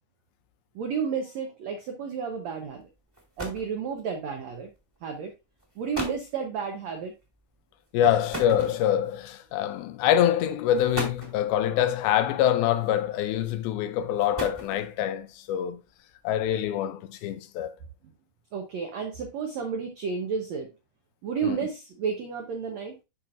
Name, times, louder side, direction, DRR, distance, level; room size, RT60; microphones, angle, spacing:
voice 1, 0.7-2.9 3.4-4.7 5.0-5.3 5.8-7.1 8.0-8.2 18.5-20.7 21.2-22.9, right 6 dB, 85° right, 1.5 m, -32 dB
sound 1, 2.8-2.9 3.1-3.8 4.7-5.0 5.6-5.7 5.9-6.3 8.3-9.2 10.1-10.2 10.7-11.4 12.7-13.2 14.0-15.0, equal, 10° right, 1.1 m, -36 dB
voice 2, 7.9-15.8 16.2-17.7 21.4-21.6, left 10 dB, 80° left, 2.4 m, -25 dB
11.5 x 4.3 x 2.5 m
omnidirectional pair, 4.4 m